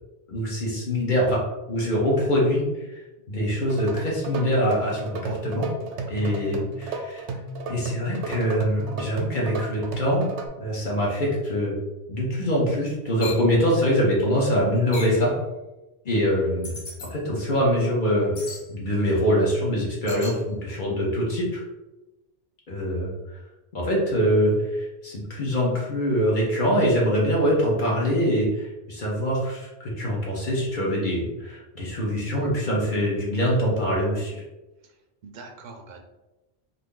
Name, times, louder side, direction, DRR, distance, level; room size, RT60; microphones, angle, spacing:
voice 1, 0.3-1.4 1.7-2.6 2.9-3.0 3.3-5.7 6.1-7.2 7.7-10.3 10.6-11.8 12.1-15.3 16.0-16.7 17.1-18.3 18.7-21.6 22.7-23.1 23.7-34.4, equal, 50° left, -4 dB, 0.9 m, -24 dB
sound 1, 3.5-10.5, right 3 dB, 85° right, 0.9 m, -34 dB
voice 2, 5.8-6.3 35.2-36.0, right 3 dB, 55° right, 3 dB, 0.5 m, -44 dB
sound 2, 13.2-13.5 14.9-15.2 16.6-17.1 18.3-18.7 20.1-20.4, left 3 dB, 80° left, 1.1 m, -36 dB
2.6 x 2.6 x 3.6 m, 1.0 s
omnidirectional pair, 1.1 m